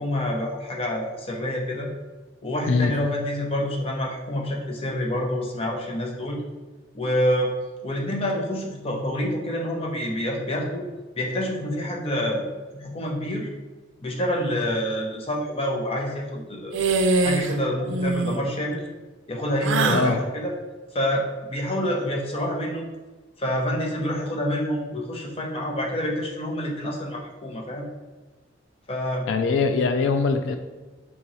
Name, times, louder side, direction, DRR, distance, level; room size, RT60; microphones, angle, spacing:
voice 1, 0.0-1.9 2.4-6.4 6.9-7.5 7.8-10.9 11.1-12.4 12.8-13.5 14.0-16.8 17.2-18.8 19.3-20.5 20.9-21.2 21.5-22.8 23.4-27.9 28.9-29.2, left 1 dB, 30° left, 0 dB, 0.7 m, -27 dB
sound 1, 16.7-17.5 17.8-18.4 19.6-20.1, right 3 dB, 90° right, 0.4 m, -23 dB
voice 2, 19.9-20.2 29.3-30.6, left 4 dB, 85° left, 7 dB, 0.3 m, -22 dB
3.7 x 3.0 x 4.0 m, 1.2 s
head